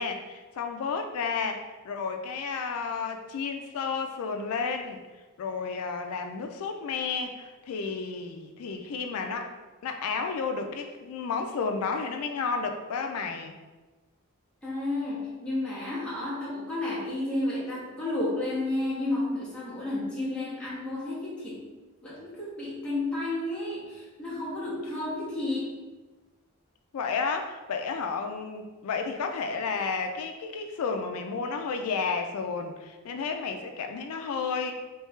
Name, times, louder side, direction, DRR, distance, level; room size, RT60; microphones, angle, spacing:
voice 1, 0.0-5.0 5.4-9.5 9.8-13.5 26.9-34.7, left 5 dB, 75° left, 5 dB, 0.3 m, -32 dB
voice 2, 14.6-21.7 22.0-25.7, left 2 dB, 5° left, -10 dB, 1.2 m, -31 dB
3.4 x 3.1 x 3.1 m, 1.2 s
head